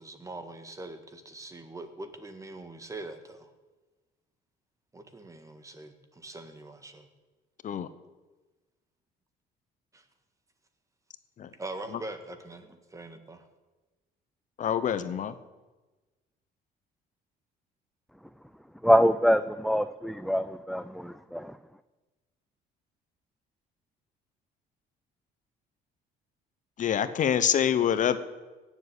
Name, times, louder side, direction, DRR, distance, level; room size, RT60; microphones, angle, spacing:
voice 1, 0.0-3.5 4.9-7.1 9.9-10.0 11.6-13.5, right 2 dB, 20° right, 9 dB, 1.7 m, -42 dB
voice 2, 14.6-15.3 26.8-28.2, left 9 dB, 50° left, 12 dB, 0.9 m, -26 dB
voice 3, 18.8-21.5, equal, ahead, 12 dB, 0.4 m, -24 dB
17.5 x 7.5 x 8.3 m, 1.2 s
cardioid pair, 110°, 17 cm